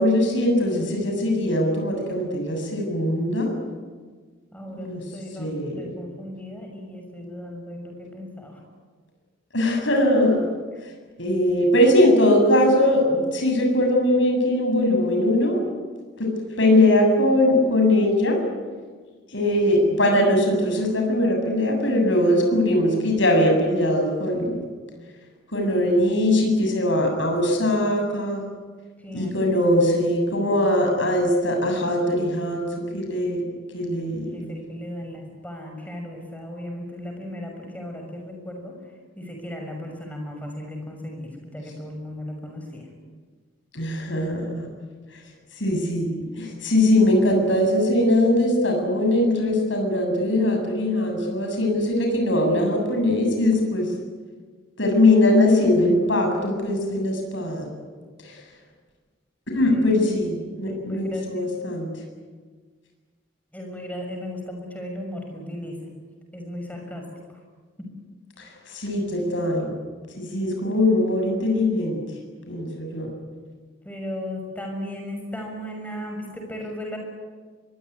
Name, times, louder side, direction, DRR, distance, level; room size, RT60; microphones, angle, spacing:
voice 1, 0.0-3.5 4.7-5.0 5.4-5.9 9.5-10.4 11.2-15.6 16.2-16.3 16.6-18.4 19.3-24.6 25.5-28.4 29.1-33.4 33.7-34.5 43.7-44.7 45.6-53.9 54.8-57.7 58.2-58.4 59.5-61.9 68.4-68.5 68.7-69.7 70.2-72.0 72.5-73.1, left 1 dB, 70° left, 3 dB, 7.8 m, -21 dB
voice 2, 4.5-8.6 29.0-29.4 34.0-38.8 39.2-42.8 59.6-60.1 60.7-61.4 63.5-65.8 66.3-67.1 73.8-77.0, left 1 dB, 10° left, 2 dB, 6.3 m, -36 dB
24.0 x 22.5 x 9.8 m, 1.5 s
head